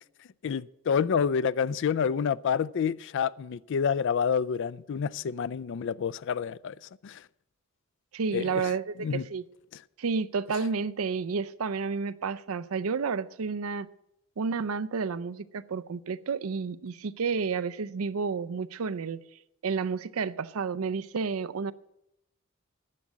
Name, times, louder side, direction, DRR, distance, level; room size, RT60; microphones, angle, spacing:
voice 1, 0.4-6.7 7.0-7.2 8.3-8.7 9.0-9.2, left 7 dB, 60° left, 0.4 m, -28 dB
voice 2, 8.1-9.4 10.0-13.9 14.4-19.2 19.6-21.7, right 5 dB, 85° right, 0.5 m, -31 dB
10.5 x 7.4 x 8.9 m
head